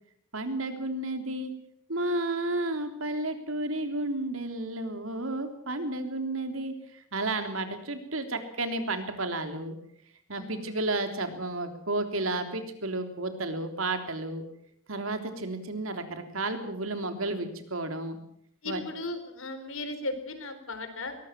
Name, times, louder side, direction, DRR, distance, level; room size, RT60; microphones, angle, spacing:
voice 1, 0.3-1.5 1.9-9.8 10.3-14.4 14.9-18.2 18.6-18.8, right 2 dB, 75° right, 7 dB, 3.4 m, -32 dB
voice 2, 10.3-10.9 18.6-21.2, left 2 dB, 70° left, 8 dB, 4.3 m, -37 dB
22.5 x 19.0 x 7.5 m, 0.69 s
head